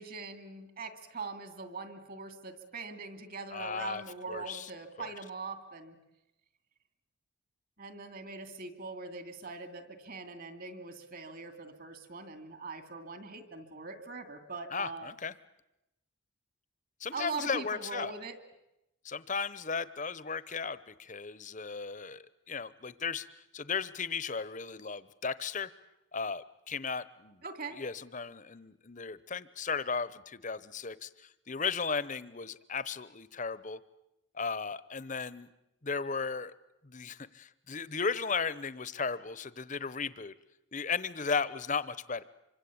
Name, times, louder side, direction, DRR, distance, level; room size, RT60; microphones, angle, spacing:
voice 1, 0.0-6.0 7.8-15.1 17.1-18.3 27.4-27.8, right 4 dB, 45° right, 9 dB, 2.6 m, -42 dB
voice 2, 3.5-4.0 4.3-4.7 5.0-5.1 14.7-15.3 17.0-18.1 19.0-25.7 26.1-27.4 27.8-33.8 34.3-35.5 35.8-36.5 36.8-40.3 40.7-42.2, left 5 dB, 35° left, 17 dB, 0.9 m, -35 dB
27.0 x 25.0 x 8.7 m, 0.91 s
head